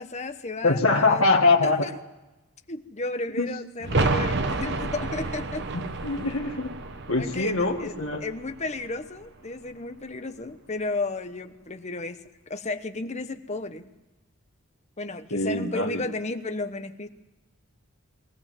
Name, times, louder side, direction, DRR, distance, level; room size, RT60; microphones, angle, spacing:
voice 1, 0.0-1.2 1.6-1.9 2.7-5.6 7.2-7.9 8.2-12.2 12.5-13.9 15.0-17.1, left 2 dB, 30° left, 8 dB, 1.0 m, -33 dB
voice 2, 0.6-1.8 3.4-3.5 5.7-6.7 7.1-8.3 15.3-16.0, left 3 dB, 75° left, 2 dB, 1.6 m, -23 dB
sound 1, 3.8-9.4 9.7-9.8, right 3 dB, 55° right, 1.0 m, -30 dB
22.5 x 16.0 x 7.5 m, 1.1 s
head